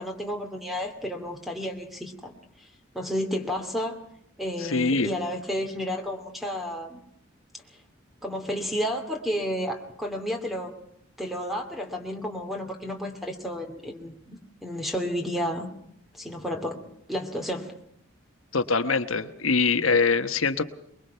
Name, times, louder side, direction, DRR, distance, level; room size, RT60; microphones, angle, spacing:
voice 1, 0.0-2.4 2.9-4.0 4.4-7.0 8.2-10.7 11.2-15.7 16.1-16.8 17.1-17.7, equal, ahead, 4 dB, 2.6 m, -31 dB
voice 2, 4.6-5.1 18.5-20.6, left 4 dB, 90° left, 9 dB, 1.4 m, -23 dB
23.0 x 22.5 x 5.7 m, 0.72 s
head